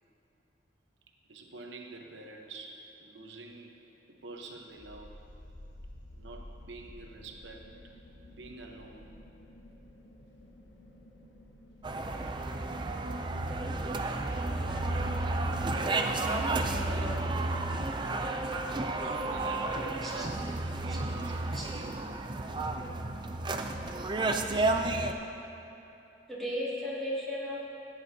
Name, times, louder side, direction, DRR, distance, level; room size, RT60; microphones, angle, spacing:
voice 1, 1.2-5.2 6.2-7.7 8.3-9.1 18.9-20.4 20.7-22.2, right 3 dB, 85° right, 2 dB, 1.0 m, -47 dB
sound 1, 4.7-17.5, left 1 dB, 80° left, 1.0 m, -51 dB
sound 2, 11.8-25.1, right 2 dB, 25° right, 0.4 m, -32 dB
voice 2, 15.7-17.9 20.0-20.3 20.9-21.0 21.5-21.7 26.3-27.6, equal, ahead, -10 dB, 2.5 m, -37 dB
15.0 x 10.0 x 2.8 m, 3.0 s
head